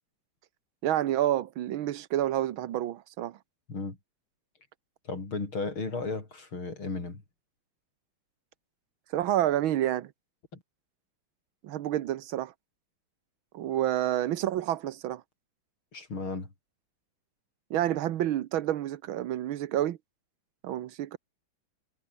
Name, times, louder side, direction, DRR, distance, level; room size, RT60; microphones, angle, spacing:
voice 1, 0.8-3.4 9.1-10.1 11.6-12.5 13.5-15.2 17.7-20.0 20.6-21.2, right 12 dB, 75° right, 1.8 m, -29 dB
voice 2, 5.0-7.2 10.5-10.6 15.9-16.5, left 3 dB, 75° left, 6.2 m, -34 dB
omnidirectional pair, 2.3 m